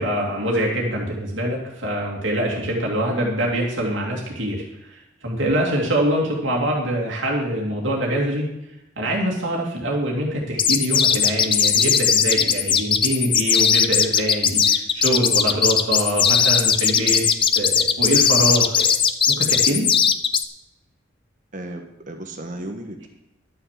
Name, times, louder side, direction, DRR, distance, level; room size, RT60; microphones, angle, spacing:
voice 1, 0.0-5.0 5.2-8.5 9.0-17.2 17.6-19.0 19.3-19.8, right 1 dB, 75° right, -2 dB, 2.4 m, -24 dB
sound 1, 10.6-20.4, left 7 dB, 25° left, 0.5 m, -18 dB
voice 2, 21.5-23.1, right 1 dB, 45° right, 4 dB, 1.3 m, -34 dB
12.0 x 6.6 x 7.3 m, 0.88 s
head